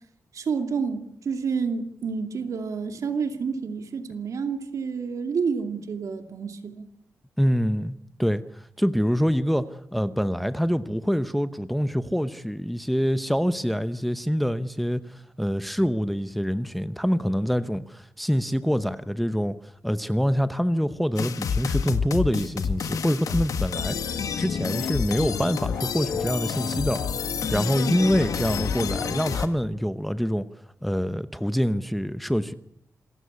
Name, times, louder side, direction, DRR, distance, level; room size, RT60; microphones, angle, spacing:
voice 1, 0.3-6.9, right 5 dB, 70° right, 2.5 m, -29 dB
voice 2, 7.4-7.9 8.2-19.6 19.8-24.1 24.4-27.1 27.5-30.5 30.8-32.5, equal, ahead, 0.8 m, -25 dB
sound 1, 21.2-29.5, left 6 dB, 85° left, 1.7 m, -28 dB
27.5 x 15.5 x 8.2 m
wide cardioid pair, 130°, 6 cm